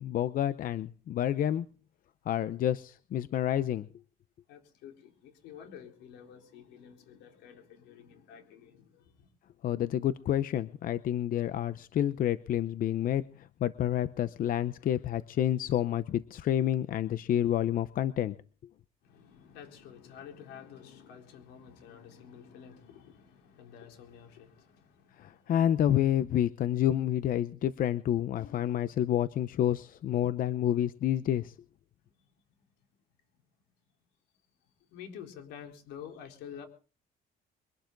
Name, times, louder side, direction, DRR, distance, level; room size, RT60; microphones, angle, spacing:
voice 1, 0.0-1.7 2.3-3.9 9.6-18.4 25.2-31.5, left 11 dB, 55° left, 0.7 m, -29 dB
voice 2, 4.5-9.3 19.0-25.5 32.0-32.3 32.8-32.9 34.9-36.7, left 8 dB, 90° left, 4.1 m, -50 dB
23.5 x 12.0 x 3.9 m
cardioid pair, 110°, 17 cm